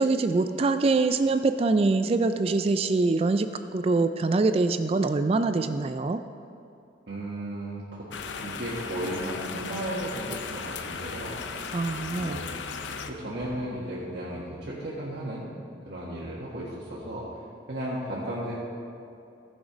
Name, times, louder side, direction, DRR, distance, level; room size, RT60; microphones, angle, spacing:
voice 1, 0.0-6.2 11.7-12.4, right 3 dB, 30° right, 9 dB, 0.3 m, -24 dB
voice 2, 7.1-8.1 8.4-11.4 12.0-15.5 15.9-17.4 17.7-18.5, right 1 dB, 60° right, -7 dB, 1.6 m, -35 dB
sound 1, 8.1-13.1, left 5 dB, 80° left, 0.6 m, -36 dB
15.0 x 6.3 x 5.0 m, 2.7 s
head